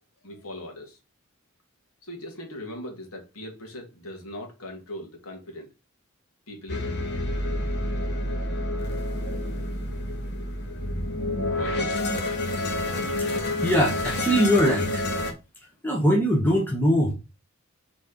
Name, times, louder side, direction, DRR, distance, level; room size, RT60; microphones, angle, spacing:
voice 1, 0.2-1.0 2.0-5.7 6.5-7.1 11.5-12.0, left 1 dB, 85° left, 2.3 m, -39 dB
sound 1, 6.7-15.3, left 1 dB, 50° left, 1.6 m, -28 dB
voice 2, 13.3-15.0 15.8-17.1, equal, 10° left, 1.2 m, -22 dB
4.4 x 4.1 x 5.2 m
head